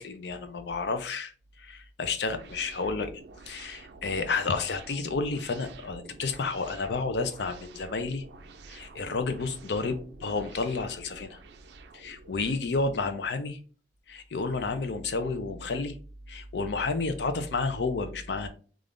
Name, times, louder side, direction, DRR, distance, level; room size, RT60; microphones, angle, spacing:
voice 1, 0.0-1.3 1.6-3.1 3.5-8.2 8.7-11.4 11.9-13.6 14.1-16.0 16.3-18.5, left 3 dB, 75° left, 8 dB, 0.5 m, -31 dB
sound 1, 2.3-12.6, right 3 dB, 70° right, 0.4 m, -49 dB
3.4 x 2.4 x 2.5 m, 0.39 s
head